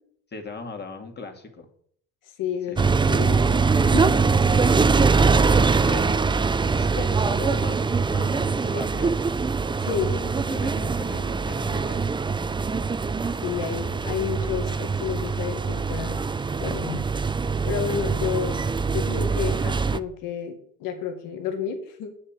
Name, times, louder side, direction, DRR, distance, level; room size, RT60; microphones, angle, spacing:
voice 1, 0.3-1.7 2.7-3.1 4.9-6.1 6.8-9.3 9.8-12.1, left 4 dB, 35° left, 4 dB, 2.5 m, -38 dB
voice 2, 2.4-2.8 3.1-4.2 9.8-10.1 13.4-16.2 16.6-17.1 17.6-18.6 18.9-22.1, left 7 dB, 80° left, 6 dB, 1.9 m, -30 dB
sound 1, 2.8-20.0, right 4 dB, 15° right, 0.5 m, -23 dB
8.8 x 6.4 x 7.6 m, 0.64 s
cardioid pair, 90°, 32 cm